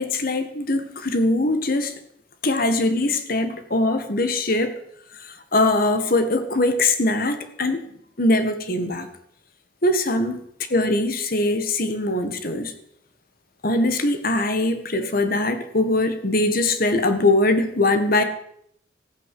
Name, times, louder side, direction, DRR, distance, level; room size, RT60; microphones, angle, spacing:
voice 1, 0.0-1.9 2.4-4.7 5.5-7.9 8.2-9.1 9.8-10.4 10.7-12.7 13.6-18.2, left 2 dB, 50° left, 9 dB, 1.7 m, -21 dB
15.0 x 9.3 x 7.7 m, 0.69 s
head